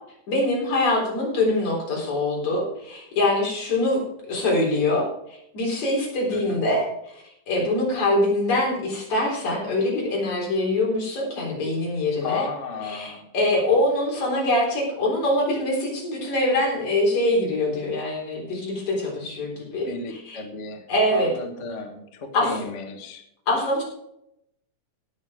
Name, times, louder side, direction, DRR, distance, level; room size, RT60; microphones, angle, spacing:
voice 1, 0.3-12.4 12.9-20.4 20.9-21.3 22.3-22.5 23.5-23.8, left 1 dB, 65° left, -2 dB, 5.2 m, -24 dB
voice 2, 12.2-13.3 19.8-20.8 21.1-23.2, left 4 dB, 45° left, 4 dB, 1.0 m, -34 dB
17.0 x 6.7 x 5.0 m, 0.78 s
omnidirectional pair, 3.6 m